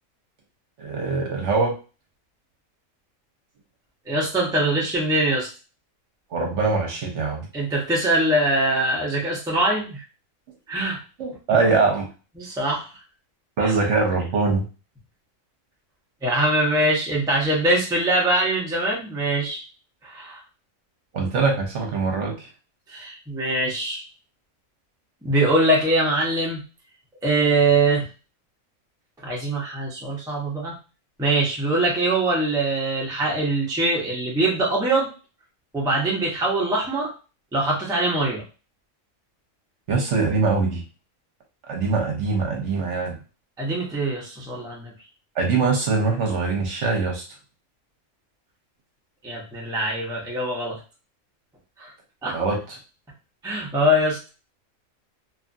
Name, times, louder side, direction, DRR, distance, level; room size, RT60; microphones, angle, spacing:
voice 1, 0.8-1.7 6.3-7.5 11.2-12.1 13.6-14.6 21.1-22.5 39.9-40.8 41.7-43.2 45.4-47.2 52.3-52.8, right 4 dB, 65° right, 0 dB, 1.0 m, -23 dB
voice 2, 4.1-5.5 7.5-10.0 10.7-11.0 11.5-11.7 12.4-12.9 13.6-13.7 16.2-19.6 20.0-20.4 22.9-24.0 25.2-26.6 27.2-28.0 29.2-30.7 31.2-35.1 35.7-37.1 37.5-38.4 43.6-44.9 49.2-50.8 51.8-51.9 52.2-52.3 53.4-54.2, right 1 dB, 5° right, -4 dB, 0.6 m, -23 dB
2.9 x 2.4 x 2.5 m, 0.32 s
omnidirectional pair, 1.4 m